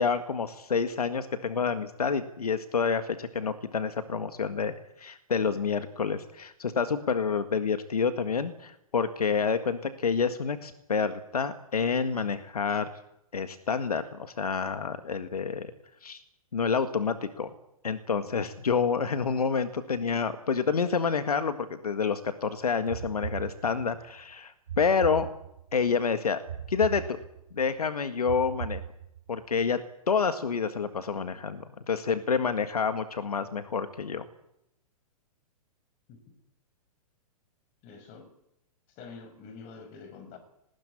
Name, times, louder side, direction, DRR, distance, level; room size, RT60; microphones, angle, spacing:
voice 1, 0.0-12.9 13.3-15.7 16.0-16.2 16.5-17.5 17.8-25.3 25.7-26.4 26.7-27.2 27.5-28.8 29.3-29.8 30.1-34.2, left 5 dB, 90° left, 1.8 m, -28 dB
sound 1, 22.9-24.0 24.7-25.8 26.5-27.6 28.3-29.4, right 9 dB, 75° right, 1.8 m, -39 dB
voice 2, 37.8-38.3 38.9-40.4, left 5 dB, 40° left, 6.1 m, -47 dB
20.0 x 19.5 x 9.9 m
hypercardioid pair, 120°, 19 cm